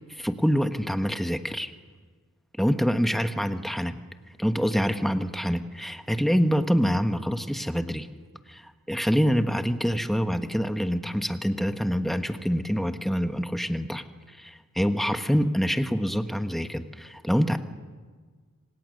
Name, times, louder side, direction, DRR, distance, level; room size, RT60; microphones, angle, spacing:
voice 1, 0.1-1.7 2.6-4.0 4.4-8.1 8.5-8.6 8.9-14.0 14.4-17.6, equal, ahead, 7 dB, 1.3 m, -26 dB
27.0 x 26.5 x 6.6 m, 1.5 s
head